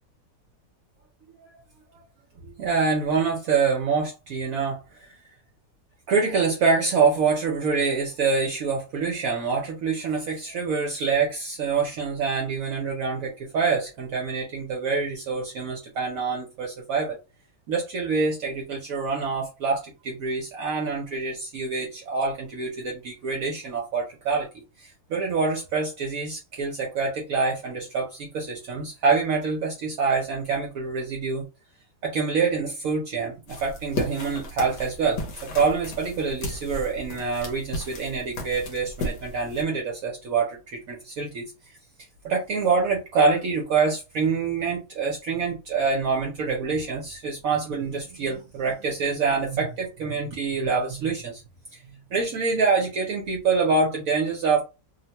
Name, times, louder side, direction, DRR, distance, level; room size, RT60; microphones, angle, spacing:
voice 1, 2.4-5.1 6.1-17.2 17.7-24.5 24.8-31.5 32.0-35.2 35.5-41.5 42.2-51.4 51.7-51.8 52.1-54.6, right 4 dB, 65° right, 1.0 m, -26 dB
sound 1, 33.5-39.6, left 2 dB, 90° left, 1.4 m, -35 dB
3.1 x 2.1 x 2.8 m
omnidirectional pair, 1.7 m